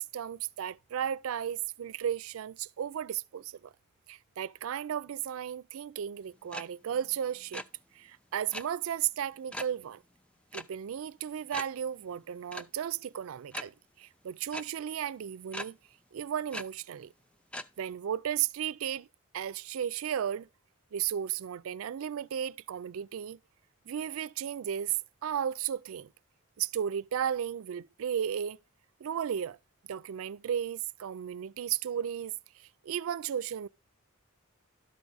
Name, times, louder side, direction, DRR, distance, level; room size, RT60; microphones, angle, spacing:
voice 1, 0.0-3.7 4.1-7.6 7.9-10.0 10.5-15.8 16.1-17.1 17.8-19.1 19.3-20.5 20.9-23.4 23.9-25.0 25.2-26.1 26.6-28.6 29.0-29.6 29.9-33.7, right 9 dB, 75° right, 0.4 m, -34 dB
sound 1, 6.5-6.6 6.9-7.1 7.4-7.6 8.5-8.6 9.5-9.7 10.5-10.6 11.0-11.1 11.5-11.6 12.5-12.6 13.5-13.6 14.5-14.6 15.5-15.7 16.5-16.6 17.5-17.7, equal, 5° left, 0.4 m, -38 dB
12.0 x 4.7 x 3.9 m
head